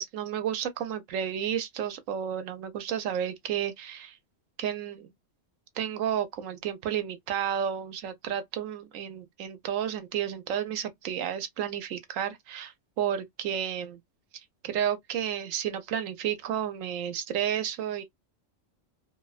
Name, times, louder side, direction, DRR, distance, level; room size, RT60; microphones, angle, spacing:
voice 1, 0.0-4.2 4.6-5.1 5.8-14.0 14.6-18.0, right 9 dB, 80° right, 1.0 m, -32 dB
2.5 x 2.1 x 2.3 m
omnidirectional pair, 1.4 m